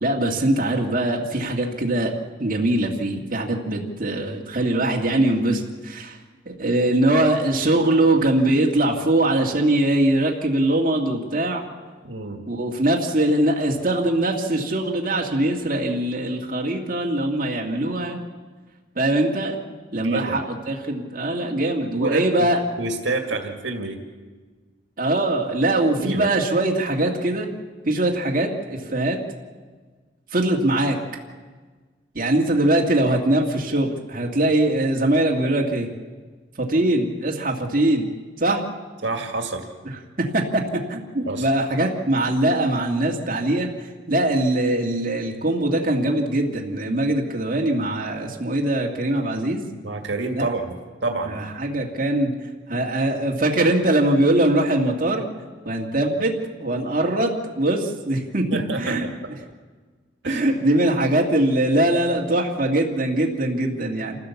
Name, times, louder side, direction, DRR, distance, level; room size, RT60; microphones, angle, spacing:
voice 1, 0.0-2.1 2.4-6.2 6.5-11.6 12.5-18.2 19.0-19.6 19.9-22.6 25.0-27.5 27.9-29.2 30.3-31.0 32.2-35.9 36.6-38.1 38.4-38.6 40.2-43.7 44.1-49.6 50.3-50.5 51.2-52.3 52.7-55.3 55.7-59.0 60.2-64.2, right 1 dB, 45° right, -1 dB, 2.1 m, -22 dB
voice 2, 12.0-12.4 20.0-20.4 21.9-22.5 22.8-24.0 25.9-26.3 39.0-39.6 41.3-41.5 49.8-50.7 51.0-51.4 58.5-59.3 60.2-60.4, right 2 dB, 80° right, 3 dB, 2.0 m, -28 dB
27.5 x 15.5 x 7.1 m, 1.4 s
head